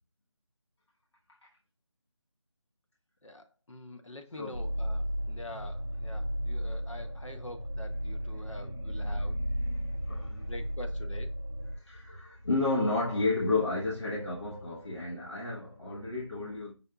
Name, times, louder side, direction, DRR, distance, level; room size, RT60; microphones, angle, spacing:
voice 1, 3.2-9.3 10.2-11.4, left 1 dB, 80° left, 0.9 m, -46 dB
sound 1, 4.5-11.8, equal, 30° left, 0.4 m, -34 dB
voice 2, 8.4-10.5 11.7-16.7, left 2 dB, 65° left, 1.2 m, -32 dB
5.3 x 2.3 x 3.6 m
figure-of-eight pair, 175°, 16 cm